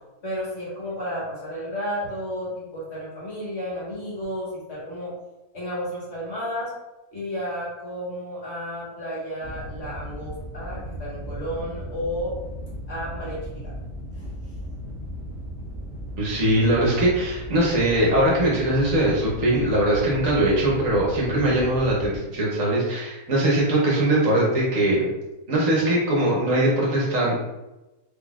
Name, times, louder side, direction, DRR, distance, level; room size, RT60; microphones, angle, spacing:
voice 1, 0.2-5.1 5.5-6.7 7.1-12.3 12.9-13.7 14.2-14.3, equal, 45° left, -7 dB, 1.6 m, -32 dB
sound 1, 9.4-22.2, equal, 5° right, 1.1 m, -36 dB
voice 2, 16.2-25.0 25.5-27.4, right 1 dB, 60° right, -4 dB, 1.3 m, -21 dB
3.8 x 3.3 x 2.4 m, 1.0 s
omnidirectional pair, 1.6 m